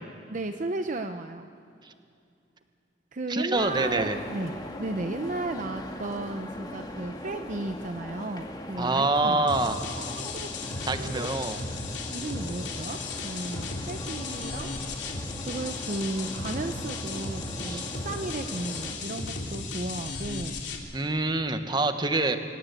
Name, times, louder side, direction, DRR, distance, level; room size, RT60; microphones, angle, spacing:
voice 1, 0.3-1.5 3.1-9.6 9.9-11.3 12.1-14.7 15.4-20.6, right 2 dB, 45° right, 7 dB, 0.7 m, -34 dB
voice 2, 3.3-4.2 8.8-9.8 10.9-11.6 17.6-17.8 20.9-22.4, right 2 dB, 25° right, 8 dB, 1.2 m, -26 dB
sound 1, 3.5-18.9, left 1 dB, 25° left, 2.0 m, -41 dB
sound 2, 9.5-20.8, left 3 dB, 75° left, 3.0 m, -35 dB
26.5 x 17.0 x 8.3 m, 2.4 s
head